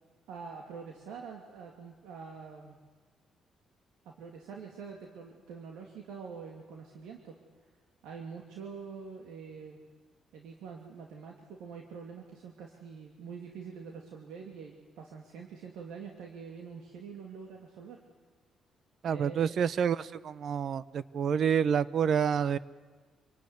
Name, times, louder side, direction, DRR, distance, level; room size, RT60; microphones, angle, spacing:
voice 1, 0.3-2.8 4.0-7.4 8.0-9.8 10.3-18.0 19.0-19.6, right 6 dB, 85° right, 1 dB, 2.8 m, -45 dB
voice 2, 19.0-22.6, right 7 dB, 60° right, 17 dB, 0.9 m, -28 dB
26.5 x 19.0 x 9.7 m, 1.4 s
cardioid pair, 90°, 0 cm